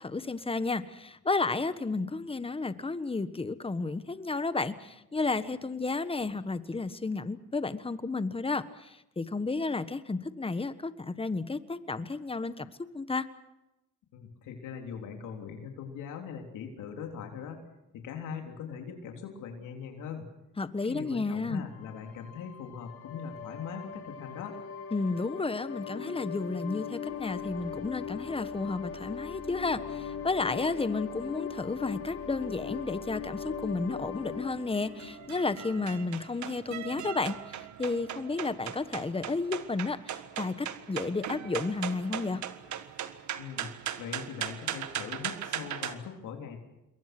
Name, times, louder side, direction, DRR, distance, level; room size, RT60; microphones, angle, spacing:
voice 1, 0.0-12.7 12.9-13.2 20.6-21.6 24.9-42.4, left 3 dB, 20° left, 13 dB, 1.4 m, -32 dB
voice 2, 14.1-17.6 18.0-20.3 20.9-24.6 43.4-43.7 44.0-46.6, left 7 dB, 90° left, 3 dB, 3.5 m, -41 dB
sound 1, 21.7-36.1, left 7 dB, 50° left, 4.7 m, -40 dB
sound 2, 34.2-45.9, right 10 dB, 70° right, 1.6 m, -39 dB
27.5 x 22.5 x 6.1 m, 0.91 s
cardioid pair, 90°, 30 cm